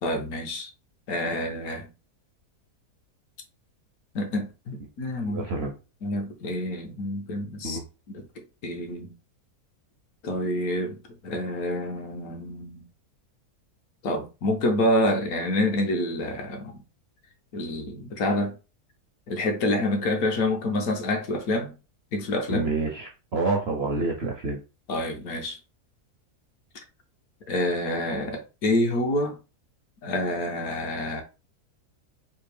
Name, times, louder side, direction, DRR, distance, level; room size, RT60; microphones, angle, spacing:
voice 1, 0.0-0.7 1.1-1.9 4.1-5.4 6.0-7.8 8.1-8.2 8.6-9.1 10.2-12.8 14.0-16.8 17.5-18.5 19.3-21.7 22.1-22.6 24.9-25.6 27.5-29.4 30.0-31.2, left 1 dB, 70° left, 1.3 m, -27 dB
voice 2, 5.2-5.7 7.6-7.8 22.5-24.6, right 3 dB, 60° right, 0.7 m, -28 dB
3.5 x 2.7 x 3.3 m
omnidirectional pair, 1.7 m